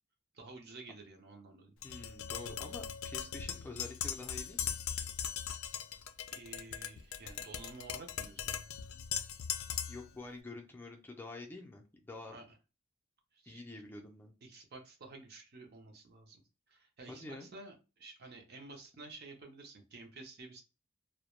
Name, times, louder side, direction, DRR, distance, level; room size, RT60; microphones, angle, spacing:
voice 1, 0.3-1.7 6.3-8.5 12.3-12.5 13.3-13.6 14.4-16.4 16.7-20.6, right 3 dB, 50° right, 3 dB, 0.6 m, -51 dB
Tap, 1.8-10.1, left 9 dB, 85° left, 0.3 m, -39 dB
voice 2, 1.8-4.8 9.9-12.4 13.4-14.3 17.1-17.5, left 2 dB, 10° left, 1 dB, 0.4 m, -47 dB
2.2 x 2.1 x 2.9 m, 0.31 s
head